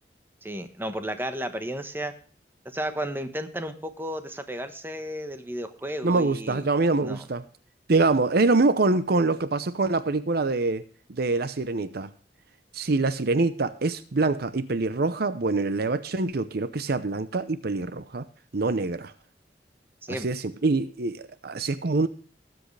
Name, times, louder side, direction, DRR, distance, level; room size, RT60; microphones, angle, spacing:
voice 1, 0.4-2.1 2.7-6.6 7.0-7.2 20.0-20.3, right 1 dB, 15° right, 1.2 m, -33 dB
voice 2, 6.0-7.4 7.9-10.8 11.2-12.1 12.7-18.3 18.5-19.1 20.1-22.1, right 3 dB, 60° right, 0.7 m, -25 dB
19.0 x 7.9 x 3.3 m
head